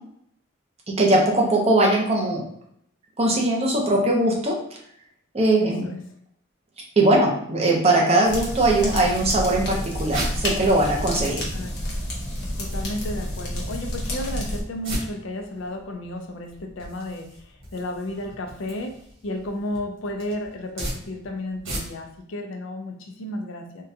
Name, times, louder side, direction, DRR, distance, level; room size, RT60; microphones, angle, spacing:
voice 1, 0.9-2.4 3.2-4.5 5.3-5.9 7.0-11.4, right 2 dB, 30° right, -1 dB, 0.6 m, -20 dB
voice 2, 5.5-6.0 11.2-11.7 12.6-23.8, left 1 dB, 75° left, 3 dB, 0.5 m, -33 dB
sound 1, 8.2-14.6, left 1 dB, 55° left, 0.9 m, -29 dB
sound 2, 10.1-22.2, right 1 dB, 90° right, 1.3 m, -38 dB
3.7 x 2.3 x 2.7 m, 0.69 s
head